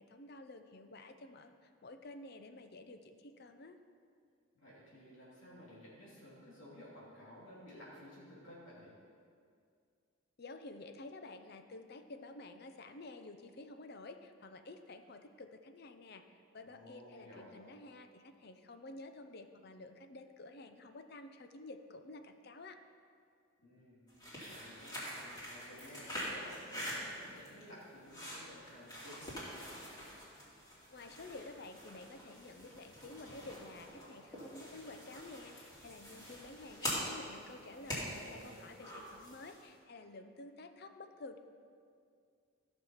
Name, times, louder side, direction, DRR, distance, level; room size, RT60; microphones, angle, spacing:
voice 1, 0.0-3.8 10.4-22.8 30.9-41.4, left 2 dB, 50° left, 8 dB, 0.6 m, -51 dB
voice 2, 4.5-8.9 16.6-17.7 23.6-29.7 38.0-38.7, equal, 70° left, -7 dB, 2.9 m, -55 dB
sound 1, 24.1-39.7, equal, 20° left, 2.8 m, -45 dB
14.5 x 6.2 x 5.7 m, 2.3 s
head